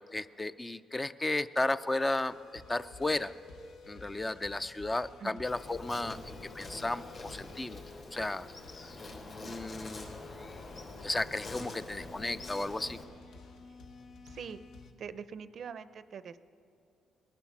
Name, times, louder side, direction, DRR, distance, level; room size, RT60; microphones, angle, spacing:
voice 1, 0.0-3.3 3.9-7.8 8.1-8.5 8.8-8.9 9.4-10.6 11.0-13.0, left 2 dB, 20° left, 13 dB, 0.4 m, -34 dB
sound 1, 2.3-14.9, left 3 dB, 80° left, 1.1 m, -52 dB
Insect, 5.4-13.0, left 2 dB, 50° left, 3.1 m, -46 dB
voice 2, 14.2-14.6 15.0-16.4, right 7 dB, 55° right, 14 dB, 0.5 m, -43 dB
20.0 x 11.5 x 6.0 m, 2.6 s
cardioid pair, 90°, 0 cm